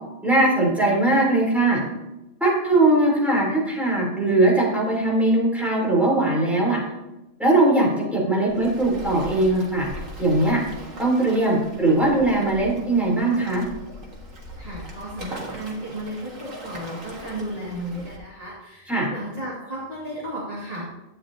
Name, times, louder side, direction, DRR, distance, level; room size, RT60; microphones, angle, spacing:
voice 1, 0.2-1.8 2.4-6.8 7.4-9.9 10.2-10.6 11.0-13.6 18.9-19.1, right 2 dB, ahead, -5 dB, 3.3 m, -20 dB
Waves surf, 8.5-18.2, equal, 85° right, 2.2 m, -39 dB
voice 2, 14.6-20.9, right 1 dB, 30° right, -8 dB, 2.2 m, -34 dB
11.0 x 9.1 x 2.8 m, 0.98 s
omnidirectional pair, 1.3 m